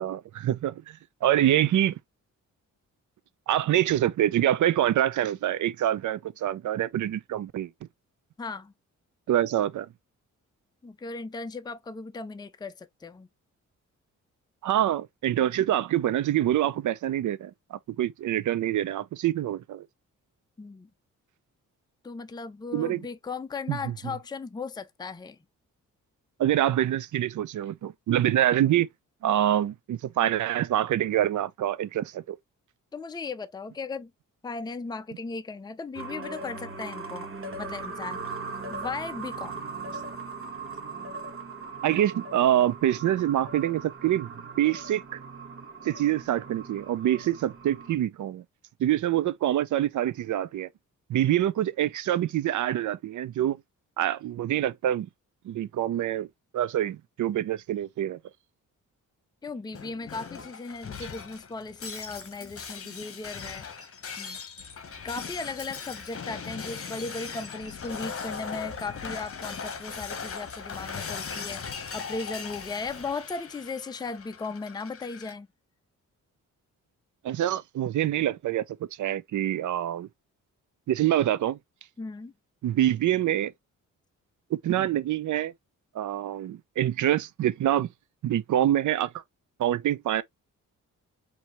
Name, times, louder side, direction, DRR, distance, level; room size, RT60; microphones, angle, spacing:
voice 1, 0.0-2.0 3.5-7.7 9.3-9.9 14.6-19.9 22.7-23.0 23.7-23.8 26.4-28.9 29.2-32.4 41.8-44.3 44.6-45.2 45.8-48.4 48.8-50.7 51.1-53.6 54.0-55.1 55.4-56.3 56.5-58.2 77.2-78.6 79.0-80.1 80.9-81.6 82.6-83.5 84.5-85.5 85.9-87.9 88.2-89.1 89.6-90.2, right 12 dB, 65° right, 0.6 m, -25 dB
voice 2, 8.4-8.7 10.8-13.3 20.6-20.9 22.0-25.4 32.9-34.1 34.4-37.3 37.6-38.2 38.7-39.6 59.4-63.7 64.2-64.4 65.0-75.5 82.0-82.3, left 4 dB, 15° left, 0.5 m, -37 dB
sound 1, 36.0-48.0, right 4 dB, 40° right, 1.3 m, -39 dB
Shatter, 59.7-75.3, left 5 dB, 45° left, 1.1 m, -39 dB
4.4 x 2.8 x 3.0 m
cardioid pair, 85°, 32 cm